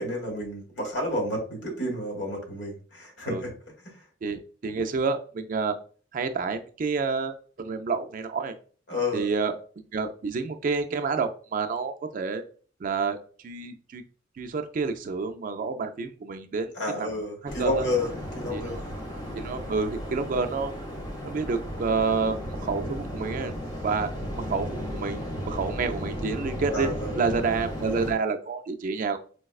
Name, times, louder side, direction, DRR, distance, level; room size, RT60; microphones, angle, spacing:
voice 1, 0.0-3.5 8.9-9.3 16.7-18.8 26.7-27.2, left 1 dB, 70° left, 0 dB, 1.3 m, -30 dB
voice 2, 4.2-5.8 6.1-8.5 9.1-9.5 9.9-12.4 12.8-13.2 13.4-14.0 14.4-16.7 17.0-17.1 17.4-17.9 18.5-18.8 19.3-20.7 21.2-23.5 23.8-24.1 24.4-24.7 24.9-26.9 27.2-29.2, right 4 dB, 45° right, 7 dB, 0.4 m, -29 dB
Waves surf, 17.5-28.1, equal, 20° left, 0.6 m, -35 dB
4.7 x 2.2 x 2.3 m, 0.40 s
head